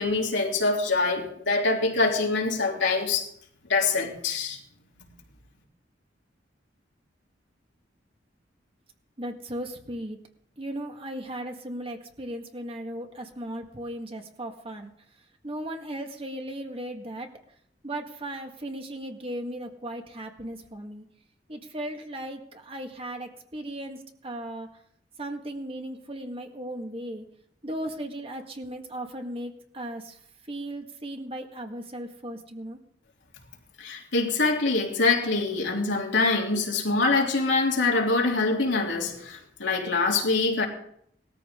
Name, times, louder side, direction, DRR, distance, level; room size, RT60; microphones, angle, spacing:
voice 1, 0.0-3.3 3.6-4.6 33.8-40.7, left 3 dB, 85° left, -1 dB, 3.3 m, -24 dB
voice 2, 9.2-10.2 10.6-14.9 15.4-17.3 17.8-21.1 21.5-24.7 25.2-27.3 27.6-32.8, right 1 dB, 30° right, 4 dB, 1.8 m, -36 dB
19.5 x 14.0 x 3.8 m, 0.68 s
head